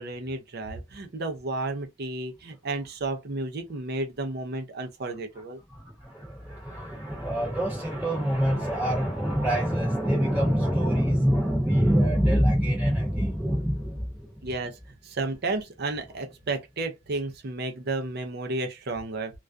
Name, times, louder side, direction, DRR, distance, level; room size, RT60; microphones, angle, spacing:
voice 1, 0.0-5.6 14.4-19.4, right 2 dB, 50° right, 0.5 m, -32 dB
voice 2, 5.7-14.5, equal, 10° right, 0.9 m, -25 dB
2.3 x 2.2 x 2.5 m
head